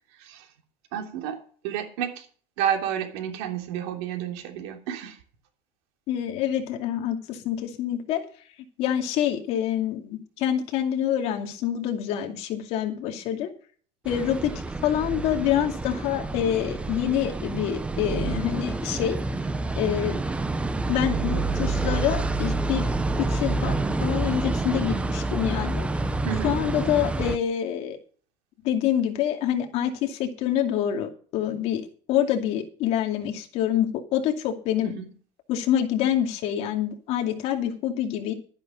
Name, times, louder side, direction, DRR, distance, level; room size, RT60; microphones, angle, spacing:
voice 1, 0.9-1.4 1.6-2.3 2.6-5.2 26.2-26.6 34.8-35.0, right 9 dB, 85° right, 5 dB, 3.2 m, -30 dB
voice 2, 6.1-8.2 8.8-13.5 14.0-14.5 14.8-19.2 19.8-20.2 20.9-22.9 23.2-25.9 26.4-28.0 28.6-31.8 32.1-34.9 35.5-38.3, left 10 dB, 50° left, 4 dB, 2.5 m, -26 dB
sound 1, 14.1-27.4, right 3 dB, 10° right, 0.7 m, -28 dB
12.5 x 10.5 x 5.2 m, 0.43 s
cardioid pair, 165°, 13 cm